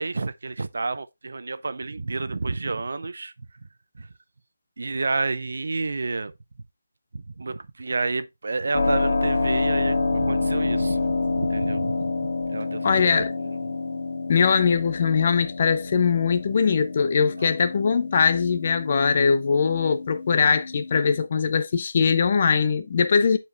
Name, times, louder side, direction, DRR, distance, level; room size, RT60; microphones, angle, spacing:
voice 1, 0.0-3.3 3.9-4.1 4.8-6.3 7.1-13.5 17.4-17.5, right 3 dB, 65° right, 0.5 m, -30 dB
Keyboard (musical), 8.7-21.3, left 3 dB, 55° left, 1.6 m, -28 dB
voice 2, 12.8-13.3 14.3-23.4, left 6 dB, 35° left, 0.5 m, -21 dB
9.5 x 4.5 x 2.5 m
figure-of-eight pair, 170°, 0 cm